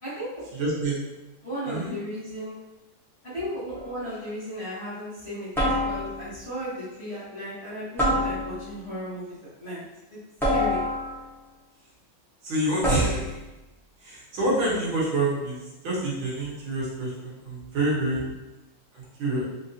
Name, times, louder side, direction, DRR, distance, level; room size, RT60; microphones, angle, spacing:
voice 1, 0.0-0.3 1.4-2.5 3.2-9.8 10.1-10.2 10.5-10.8, equal, 35° left, -12 dB, 1.4 m, -35 dB
voice 2, 0.5-1.0 1.7-1.9 12.4-13.4 14.0-18.2 18.9-19.4, right 2 dB, 75° right, -7 dB, 2.0 m, -27 dB
sound 1, 3.7-4.1 5.5-6.3 8.0-8.8 10.4-11.3 12.8-13.4, left 1 dB, 5° left, 0.5 m, -26 dB
4.8 x 2.6 x 2.7 m, 1.0 s
omnidirectional pair, 2.3 m